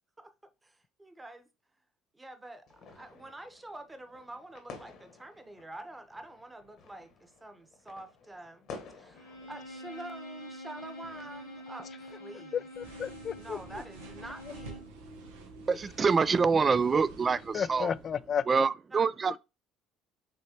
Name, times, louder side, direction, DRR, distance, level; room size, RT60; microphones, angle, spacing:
voice 1, 0.6-1.5 2.1-12.7 13.3-14.8 18.9-19.1, right 1 dB, 15° right, 1.0 m, -47 dB
sound 1, 2.7-13.1, left 4 dB, 65° left, 1.2 m, -53 dB
Bowed string instrument, 9.1-14.9, equal, 90° left, 2.0 m, -46 dB
voice 2, 12.5-13.6 17.5-18.7, left 7 dB, 45° left, 0.3 m, -32 dB
sound 2, 12.8-18.6, right 3 dB, 90° right, 1.0 m, -49 dB
voice 3, 15.7-17.9 18.5-19.4, right 5 dB, 35° right, 0.3 m, -26 dB
5.5 x 3.2 x 2.9 m
hypercardioid pair, 70°, 0 cm